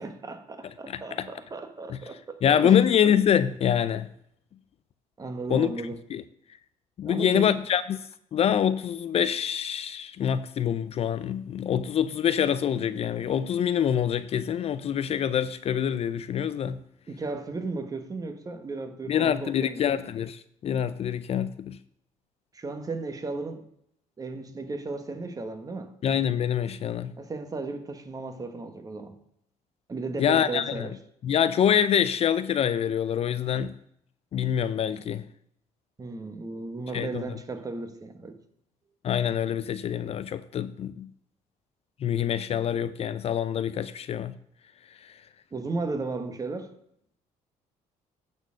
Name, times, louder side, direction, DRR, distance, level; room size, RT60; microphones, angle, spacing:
voice 1, 0.0-2.8 5.2-6.0 7.0-7.5 17.1-19.8 22.5-23.7 24.2-25.9 27.2-29.2 29.9-31.0 36.0-38.4 45.5-46.7, right 3 dB, 25° right, 1.2 m, -35 dB
voice 2, 0.9-1.3 1.9-2.0 2.4-4.1 5.5-5.7 6.1-6.2 7.0-8.0 8.3-16.8 19.1-21.8 26.0-27.1 30.2-30.9 31.2-33.7 34.3-35.2 36.9-37.2 39.0-41.1 42.0-44.3, left 9 dB, 45° left, 0.4 m, -25 dB
9.2 x 4.5 x 6.2 m
cardioid pair, 100°, 14 cm